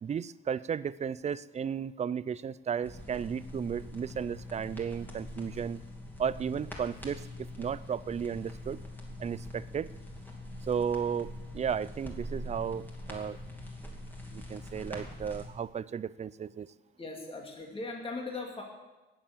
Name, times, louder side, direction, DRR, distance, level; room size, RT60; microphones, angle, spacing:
voice 1, 0.0-5.8 6.2-8.8 9.2-9.9 10.6-13.4 14.3-16.7, right 7 dB, 35° right, 19 dB, 0.4 m, -34 dB
sound 1, 2.8-15.4, left 1 dB, 10° left, 2.8 m, -43 dB
voice 2, 17.0-18.6, left 3 dB, 25° left, 1 dB, 2.5 m, -39 dB
18.0 x 7.1 x 7.4 m, 1.1 s
cardioid pair, 110°, 20 cm